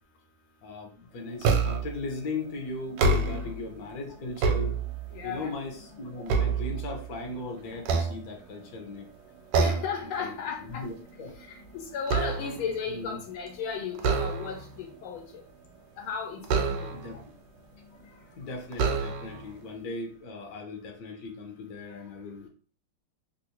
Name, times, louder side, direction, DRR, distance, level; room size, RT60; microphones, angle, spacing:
voice 1, 0.6-4.8 5.2-9.1 9.6-9.8 10.2-10.3 10.6-11.3 12.9-13.2 16.9-17.2 18.0-22.5, left 3 dB, 60° left, 2 dB, 1.1 m, -38 dB
sound 1, 1.4-2.0 2.8-3.6 4.2-5.3 5.8-7.3 7.8-8.8 9.5-10.0 10.4-10.7 11.0-12.7 14.0-14.8 16.4-17.2 18.0-18.1 18.7-19.5, right 4 dB, 85° right, 1.5 m, -27 dB
voice 2, 5.1-5.5 9.6-10.9 11.4-15.4 16.0-16.9, left 6 dB, 75° left, 4 dB, 1.4 m, -35 dB
3.4 x 2.6 x 2.8 m, 0.40 s
omnidirectional pair, 2.3 m